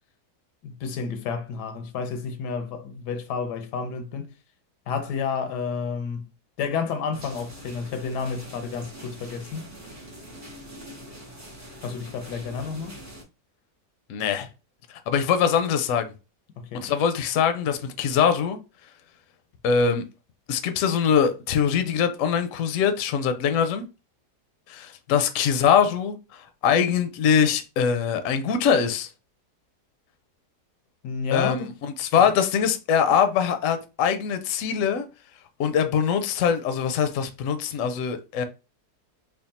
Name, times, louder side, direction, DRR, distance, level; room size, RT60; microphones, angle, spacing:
voice 1, 0.6-4.3 4.9-6.2 6.6-9.7 11.8-13.0 16.6-16.9 31.0-31.7, left 5 dB, 85° left, 1.3 m, -30 dB
sound 1, 7.1-13.2, equal, 20° right, 0.4 m, -43 dB
voice 2, 14.1-14.5 14.9-16.1 16.7-18.6 19.6-20.0 20.5-23.9 24.7-29.1 31.3-35.1 35.6-38.4, left 7 dB, 65° left, 0.8 m, -23 dB
3.5 x 2.2 x 4.1 m
omnidirectional pair, 1.7 m